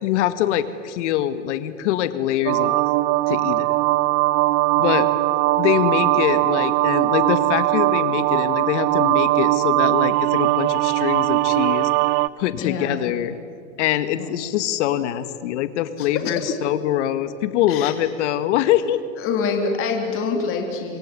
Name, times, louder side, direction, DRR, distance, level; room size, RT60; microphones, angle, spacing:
voice 1, 0.0-2.8 3.3-3.7 4.8-5.1 5.6-11.9 12.4-13.3 13.8-19.0, left 12 dB, 55° left, 11 dB, 1.9 m, -23 dB
sound 1, 2.5-12.3, right 19 dB, 35° right, 0.7 m, -20 dB
voice 2, 12.6-13.1 14.2-14.3 16.0-16.3 17.7-17.9 19.2-21.0, left 5 dB, 30° left, 3 dB, 3.5 m, -26 dB
26.5 x 22.0 x 9.9 m, 2.4 s
hypercardioid pair, 135°, 41 cm